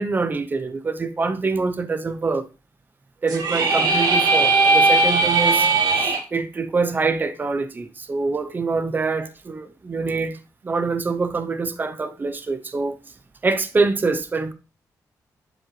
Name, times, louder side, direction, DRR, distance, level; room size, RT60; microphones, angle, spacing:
voice 1, 0.0-2.4 3.2-5.7 6.0-10.4 10.6-13.0 13.4-14.5, right 4 dB, 25° right, 0.7 m, -25 dB
sound 1, 3.3-6.2, right 3 dB, 85° right, 1.9 m, -18 dB
11.0 x 5.3 x 3.2 m
wide cardioid pair, 140°, 7 cm